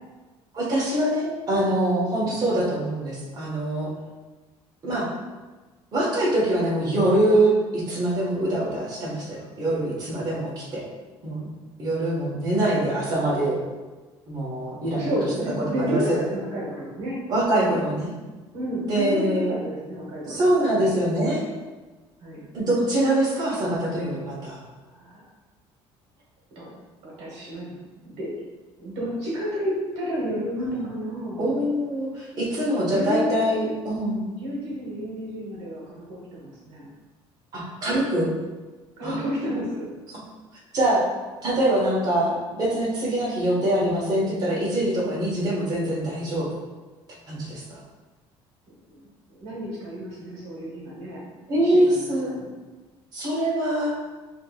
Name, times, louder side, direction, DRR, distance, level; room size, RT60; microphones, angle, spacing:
voice 1, 0.5-3.9 4.8-5.1 5.9-10.8 11.2-11.5 11.8-13.6 14.3-15.1 15.6-16.2 17.3-18.1 18.9-19.5 20.2-21.4 22.5-24.6 30.6-30.9 31.4-34.2 37.5-38.3 39.0-39.2 40.1-40.2 40.7-41.0 41.4-46.5 47.3-47.8 51.5-52.3 53.1-53.9, right 1 dB, 40° right, -5 dB, 1.5 m, -24 dB
voice 2, 14.9-17.2 17.5-17.8 18.5-20.5 20.8-20.9 22.2-22.5 24.8-25.3 26.5-26.7 27.0-27.7 28.0-28.3 28.8-31.6 32.8-33.7 34.3-36.9 39.0-39.9 48.9-49.0 49.3-51.2 51.6-52.5, equal, 80° right, -4 dB, 1.2 m, -31 dB
6.0 x 3.0 x 2.4 m, 1.2 s
cardioid pair, 125°, 11 cm